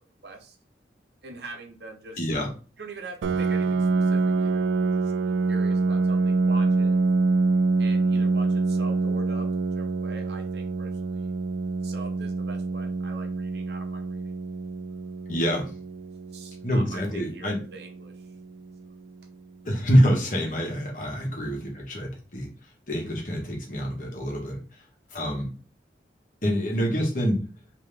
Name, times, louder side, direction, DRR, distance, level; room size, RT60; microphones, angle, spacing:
voice 1, 0.2-0.6 1.2-2.3 2.8-7.0 7.8-11.3 11.8-14.2 16.3-18.2, right 3 dB, 65° right, 5 dB, 0.8 m, -43 dB
voice 2, 2.2-2.5 15.3-15.7 16.6-17.6 19.6-22.5 22.9-24.6 25.1-25.5 26.4-27.4, equal, 45° left, 0 dB, 1.2 m, -25 dB
Piano, 3.2-18.6, right 3 dB, 85° right, 0.3 m, -26 dB
3.6 x 2.9 x 3.3 m, 0.36 s
head